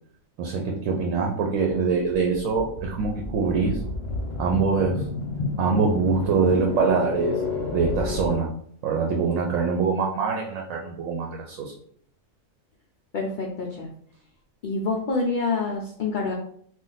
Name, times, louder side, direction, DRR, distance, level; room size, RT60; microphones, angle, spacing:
voice 1, 0.4-3.8 4.4-5.0 5.6-7.4 7.7-8.5 8.8-11.7, right 4 dB, 80° right, 1 dB, 0.9 m, -24 dB
sound 1, 1.7-8.4, left 2 dB, 45° left, 0.7 m, -31 dB
voice 2, 13.1-13.9 14.6-16.3, left 3 dB, 90° left, 0 dB, 0.4 m, -27 dB
2.5 x 2.3 x 3.9 m, 0.62 s
omnidirectional pair, 1.4 m